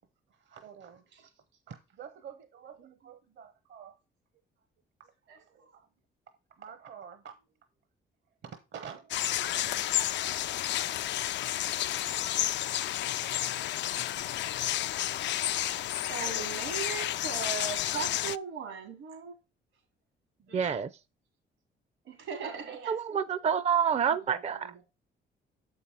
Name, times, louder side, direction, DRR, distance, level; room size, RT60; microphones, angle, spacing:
voice 1, 0.3-1.3 1.7-4.0 5.0-5.9 6.6-7.3 8.4-10.1 11.5-11.6, right 7 dB, 65° right, 1.0 m, -49 dB
voice 2, 5.3-5.7 13.0-13.5 14.4-14.6 16.1-19.3 20.5-20.7 22.0-23.2 24.3-24.8, right 6 dB, 90° right, 3.5 m, -39 dB
sound 1, 9.1-18.4, left 13 dB, 65° left, 0.4 m, -31 dB
voice 3, 20.5-20.9 22.9-24.8, right 7 dB, 35° right, 0.5 m, -28 dB
7.3 x 5.3 x 4.3 m
cardioid pair, 90°, 20 cm